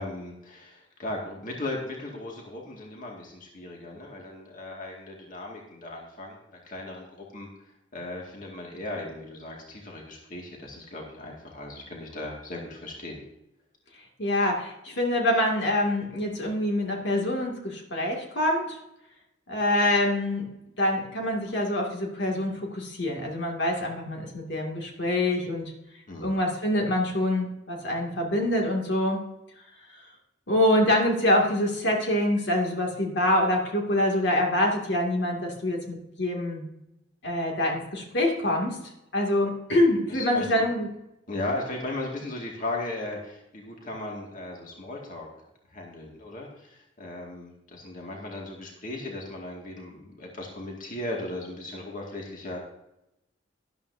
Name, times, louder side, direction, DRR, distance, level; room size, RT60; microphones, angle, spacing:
voice 1, 0.0-6.4 6.6-7.5 7.9-13.2 26.1-26.3 40.1-40.7 41.3-45.3 45.7-52.6, left 2 dB, 45° left, -1 dB, 2.2 m, -37 dB
voice 2, 14.2-18.8 19.5-20.5 20.8-25.7 26.2-29.3 30.5-36.7 37.2-38.8 39.1-40.9, left 1 dB, 65° left, 0 dB, 2.4 m, -25 dB
13.0 x 11.5 x 2.7 m, 0.87 s
head